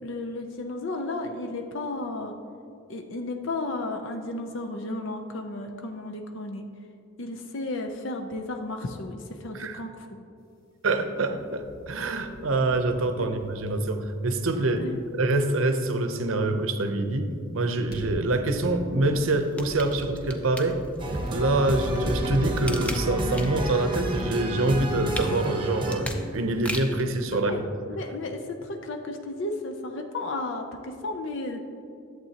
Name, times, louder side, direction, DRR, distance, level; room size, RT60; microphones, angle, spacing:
voice 1, 0.0-2.3 2.9-6.6 7.2-10.2 13.2-13.3 14.7-15.0 27.3-27.6 27.9-31.6, left 2 dB, 65° left, 4 dB, 0.6 m, -33 dB
voice 2, 10.8-20.8 21.3-27.5, right 2 dB, 85° right, 7 dB, 0.7 m, -26 dB
sound 1, 11.4-13.9 14.2-15.3 17.7-23.6, equal, 50° left, 1.9 m, -38 dB
sound 2, 19.4-21.2 21.7-23.7 24.1-27.1 27.6-27.7, left 1 dB, 5° left, 0.5 m, -38 dB
sound 3, 21.0-26.0, right 1 dB, 25° right, 0.8 m, -30 dB
11.0 x 7.6 x 2.9 m, 2.5 s
head